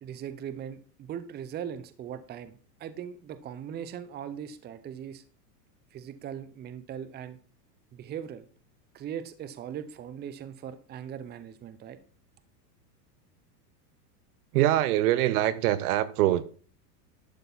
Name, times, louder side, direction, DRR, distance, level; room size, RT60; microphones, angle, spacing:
voice 1, 0.0-5.2 5.9-7.4 7.9-8.5 8.9-12.0, right 9 dB, 20° right, 0.7 m, -39 dB
voice 2, 14.5-16.4, right 13 dB, 65° right, 1.0 m, -24 dB
12.0 x 7.8 x 4.1 m
supercardioid pair, 125°, 48 cm